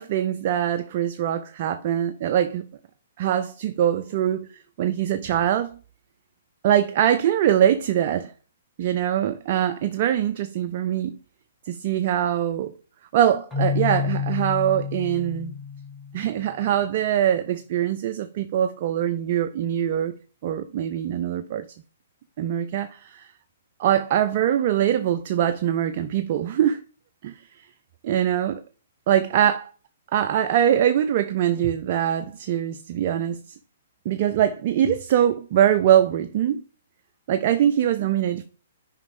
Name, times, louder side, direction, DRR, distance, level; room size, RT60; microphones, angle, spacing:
voice 1, 0.0-2.6 3.2-4.5 4.8-5.8 6.6-8.3 8.8-11.2 11.7-12.7 13.1-15.5 16.1-20.2 20.4-21.6 22.4-23.3 23.8-26.8 27.2-27.7 28.0-28.6 29.1-29.7 30.1-33.4 34.1-36.6 37.3-38.4, right 10 dB, 45° right, 0.4 m, -23 dB
Keyboard (musical), 13.5-16.4, left 6 dB, ahead, 1.6 m, -29 dB
7.9 x 5.1 x 3.6 m
hypercardioid pair, 130°, 0 cm